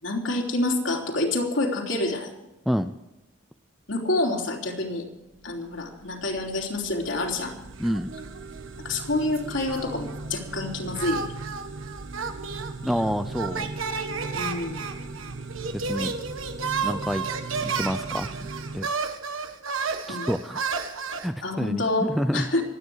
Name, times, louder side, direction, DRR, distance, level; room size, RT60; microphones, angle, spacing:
voice 1, 0.0-2.3 3.9-5.1 5.4-7.5 8.8-11.2 14.3-14.8 20.1-20.3 21.4-22.6, left 2 dB, 75° left, 0 dB, 3.3 m, -27 dB
sound 1, 5.3-18.8, right 3 dB, 70° right, 1.1 m, -39 dB
voice 2, 7.8-8.1 12.8-13.7 15.8-16.1 16.8-17.2 17.6-18.3 18.7-18.9 20.1-20.6 21.2-22.5, equal, ahead, 9 dB, 0.5 m, -27 dB
sound 2, 7.8-8.7 9.0-10.3 10.9-21.3, right 5 dB, 90° right, 1.6 m, -32 dB
25.0 x 9.7 x 4.7 m, 0.90 s
head